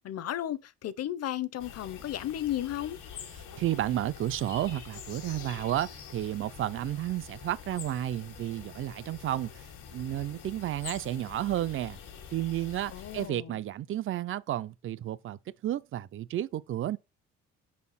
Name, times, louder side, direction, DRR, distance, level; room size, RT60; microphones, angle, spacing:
voice 1, 0.0-3.0 12.9-13.6, left 12 dB, 55° left, 0.7 m, -34 dB
sound 1, 1.6-13.3, left 7 dB, 80° left, 1.5 m, -46 dB
voice 2, 3.6-12.0 12.3-17.0, right 12 dB, 45° right, 0.4 m, -32 dB
5.3 x 4.3 x 5.5 m
cardioid pair, 90°, 30 cm